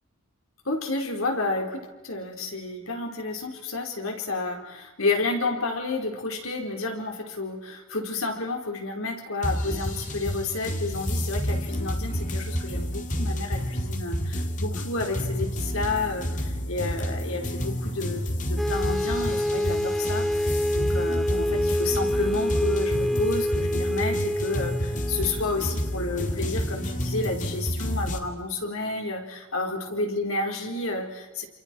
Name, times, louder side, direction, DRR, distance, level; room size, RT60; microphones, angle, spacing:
voice 1, 0.6-14.2 14.6-31.4, left 3 dB, 90° left, 2 dB, 4.5 m, -31 dB
sound 1, 9.4-28.2, equal, 35° left, 2.1 m, -29 dB
sound 2, 18.6-26.3, left 1 dB, ahead, 0.8 m, -27 dB
29.0 x 27.5 x 4.6 m, 1.1 s
head